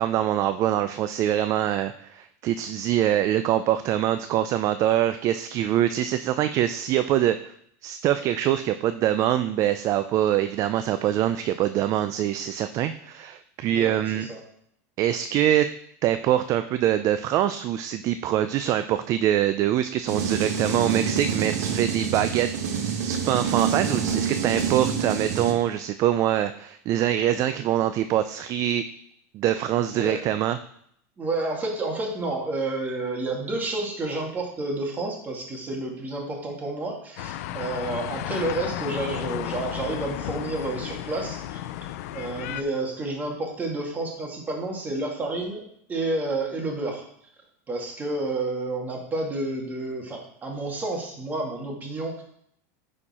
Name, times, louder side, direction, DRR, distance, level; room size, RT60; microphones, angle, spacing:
voice 1, 0.0-7.5 7.8-14.3 15.0-15.7 16.0-28.8 29.3-30.6, right 11 dB, 40° right, 11 dB, 0.4 m, -24 dB
voice 2, 13.7-14.4 29.9-30.2 31.2-41.6 42.1-45.6 45.9-47.0 47.7-52.2, right 2 dB, 20° right, 0 dB, 2.0 m, -30 dB
sound 1, 20.1-25.5, right 7 dB, 85° right, 1.4 m, -27 dB
sound 2, 37.2-42.6, left 13 dB, 70° left, 0.4 m, -33 dB
9.9 x 4.4 x 4.3 m, 0.69 s
supercardioid pair, 130°, 8 cm